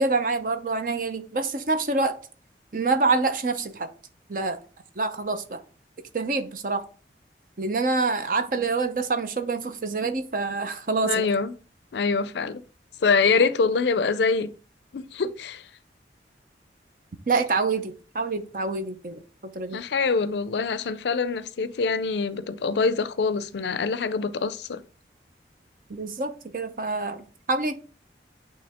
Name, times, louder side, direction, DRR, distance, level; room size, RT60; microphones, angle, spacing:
voice 1, 0.0-2.2 2.7-3.9 4.3-4.6 5.0-5.6 6.1-6.8 7.6-11.3 17.3-19.8 25.9-27.7, right 3 dB, 50° right, 0.7 m, -26 dB
voice 2, 11.0-11.5 11.9-12.6 13.0-14.5 14.9-15.6 19.7-24.8, left 4 dB, 80° left, 0.4 m, -24 dB
8.6 x 3.2 x 3.5 m
head